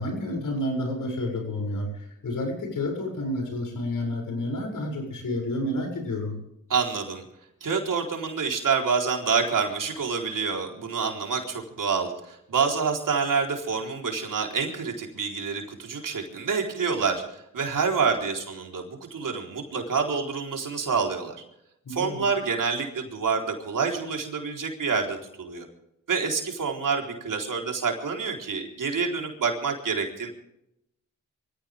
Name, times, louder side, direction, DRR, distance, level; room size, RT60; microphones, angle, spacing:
voice 1, 0.0-6.4 21.9-22.2, left 1 dB, 80° left, 2 dB, 7.2 m, -30 dB
voice 2, 6.7-7.2 7.6-21.4 21.9-25.7 26.1-30.3, right 5 dB, 80° right, 1 dB, 4.1 m, -27 dB
23.5 x 16.0 x 3.6 m, 0.79 s
cardioid pair, 55°, 32 cm